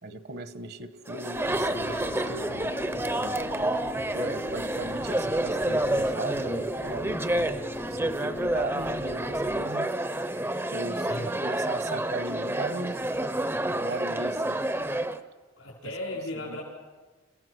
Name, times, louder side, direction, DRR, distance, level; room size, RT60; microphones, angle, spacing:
voice 1, 0.0-2.7 3.1-3.3 4.1-7.5 7.9-9.9 10.7-13.0 13.8-14.6 15.8-15.9 16.3-16.6, right 2 dB, 55° right, 11 dB, 1.2 m, -37 dB
Chatter, 1.1-15.2, right 1 dB, 10° right, 0.7 m, -29 dB
sound 1, 1.4-9.7, left 3 dB, 30° left, 0.6 m, -40 dB
voice 2, 15.6-16.6, left 1 dB, 85° left, -6 dB, 5.2 m, -35 dB
29.5 x 16.0 x 6.3 m, 1.3 s
head